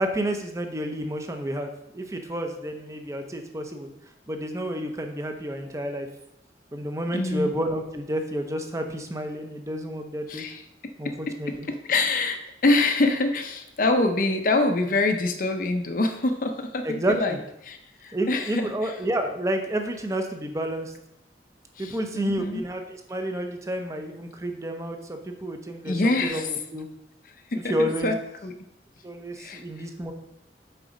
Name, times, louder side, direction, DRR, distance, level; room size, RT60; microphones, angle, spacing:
voice 1, 0.0-3.9 4.3-6.1 6.7-10.4 11.0-11.7 16.8-17.4 18.1-20.9 21.8-26.9 27.5-28.1 29.0-30.1, right 1 dB, 15° right, 5 dB, 0.7 m, -30 dB
voice 2, 7.1-7.5 10.3-10.6 11.7-17.4 17.6-19.0 21.8-22.6 25.8-26.5 27.5-27.7 28.0-28.2 28.4-28.5 29.4-29.9, left 2 dB, 50° left, 6 dB, 0.6 m, -25 dB
7.8 x 4.1 x 5.0 m, 0.81 s
head